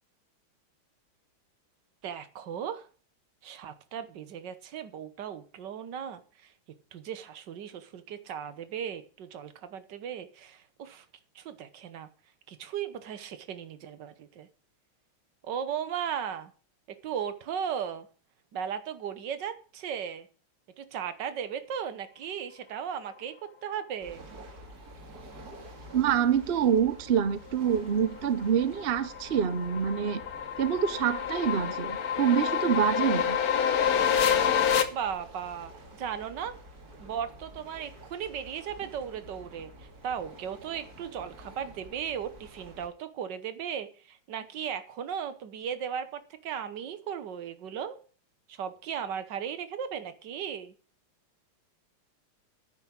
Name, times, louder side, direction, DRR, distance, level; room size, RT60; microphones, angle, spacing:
voice 1, 2.0-2.9 3.4-6.5 6.9-11.0 11.3-12.1 12.5-14.5 15.4-16.5 17.0-18.1 18.5-20.3 20.8-23.3 23.6-24.2 34.9-35.7 36.0-36.6 37.0-48.0 48.5-50.7, right 8 dB, 60° right, 12 dB, 1.5 m, -36 dB
sound 1, 24.0-42.9, right 1 dB, 45° right, 2.8 m, -49 dB
voice 2, 25.9-30.2 30.6-33.4, right 8 dB, 85° right, 13 dB, 0.5 m, -26 dB
sound 2, 28.2-34.8, left 8 dB, 55° left, 1.3 m, -28 dB
9.5 x 6.2 x 8.5 m, 0.40 s
omnidirectional pair, 2.3 m